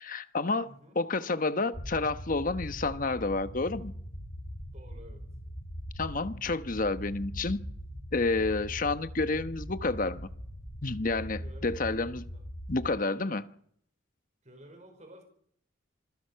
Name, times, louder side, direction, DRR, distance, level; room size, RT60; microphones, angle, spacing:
voice 1, 0.0-0.7 0.9-3.9 6.0-7.6 8.1-10.3 10.8-12.3 12.7-13.5, left 3 dB, 40° left, 11 dB, 1.1 m, -30 dB
voice 2, 0.6-1.0 4.7-5.2 8.4-8.7 11.4-11.8 12.3-12.4 14.4-15.2, right 1 dB, 35° right, 5 dB, 5.1 m, -52 dB
sound 1, 1.7-12.9, equal, 60° left, 7.6 m, -41 dB
26.5 x 21.5 x 5.8 m, 0.67 s
head